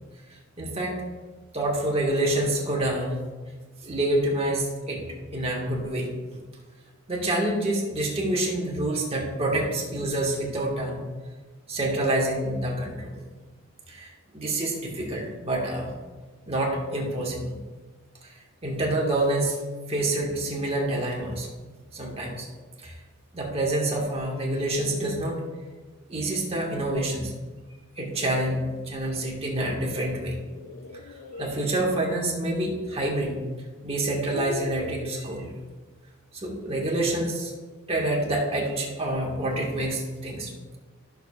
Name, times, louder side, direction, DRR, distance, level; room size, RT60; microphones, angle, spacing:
voice 1, 0.6-1.0 1.5-3.2 3.8-5.0 5.3-6.1 7.1-11.0 11.7-13.2 13.9-15.9 16.5-17.6 18.6-19.6 19.9-21.5 21.9-22.5 22.8-22.9 23.3-25.4 26.1-27.3 28.0-30.3 31.4-33.4 33.8-35.5 36.3-37.5 37.9-40.5, right 1 dB, 30° right, -2 dB, 1.7 m, -27 dB
sound 1, 30.3-31.6 33.0-33.1 33.8-35.2, left 4 dB, 80° left, 0.5 m, -39 dB
14.0 x 6.7 x 2.4 m, 1.4 s
head